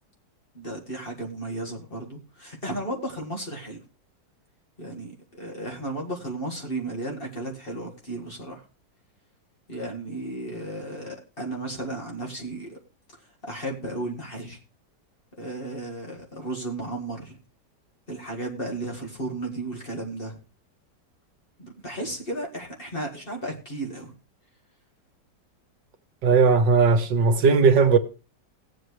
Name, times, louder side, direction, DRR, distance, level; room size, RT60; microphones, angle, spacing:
voice 1, 0.5-3.8 4.8-8.6 9.7-12.8 13.4-14.6 15.4-17.4 18.1-20.4 21.6-24.1, right 1 dB, 30° left, 2.0 m, -34 dB
voice 2, 26.2-28.0, right 5 dB, 80° right, 1.8 m, -18 dB
18.5 x 7.8 x 3.2 m
omnidirectional pair, 1.9 m